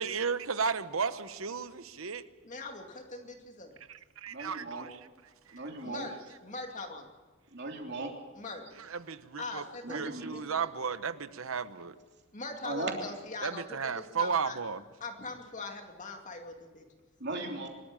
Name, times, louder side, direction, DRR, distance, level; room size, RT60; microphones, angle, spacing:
voice 1, 0.0-2.2 3.9-5.1 5.5-5.6 8.8-12.0 13.4-14.8, right 5 dB, 70° right, 13 dB, 1.0 m, -34 dB
voice 2, 2.4-3.8 5.8-7.1 8.3-8.6 9.4-10.9 12.3-14.6 15.0-16.8, left 3 dB, 35° left, 3 dB, 2.4 m, -42 dB
voice 3, 4.3-4.9 5.5-6.1 7.5-8.1 9.8-10.4 12.6-12.9 17.2-17.7, right 2 dB, 50° right, 1 dB, 3.2 m, -37 dB
24.0 x 13.5 x 9.0 m, 1.3 s
head